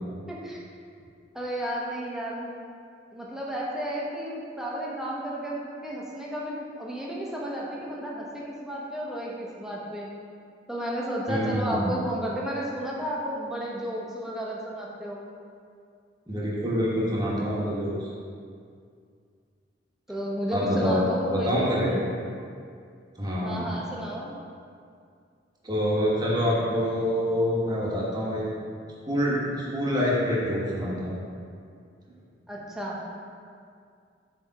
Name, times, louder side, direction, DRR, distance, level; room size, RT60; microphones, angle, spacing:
voice 1, 0.3-0.6 1.3-2.5 3.1-10.1 10.7-15.2 20.1-22.0 23.4-24.4 32.5-33.0, equal, 5° right, -5 dB, 1.0 m, -33 dB
voice 2, 11.3-11.9 16.3-18.1 20.5-21.1 21.3-21.9 23.2-23.7 25.6-28.5 29.1-31.1, equal, 20° right, -6 dB, 1.3 m, -26 dB
7.7 x 3.5 x 4.7 m, 2.3 s
head